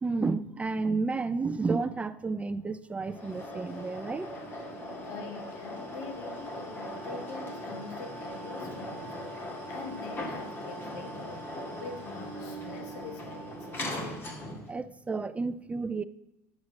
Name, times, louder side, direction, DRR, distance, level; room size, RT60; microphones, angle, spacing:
voice 1, 0.0-4.3 14.7-16.0, right 4 dB, 15° right, 0.4 m, -31 dB
sound 1, 3.1-14.8, equal, 25° left, 2.1 m, -39 dB
voice 2, 5.0-9.2 9.7-11.4 11.8-13.9, left 5 dB, 75° left, 1.9 m, -44 dB
9.5 x 7.4 x 6.2 m
supercardioid pair, 130°, 9 cm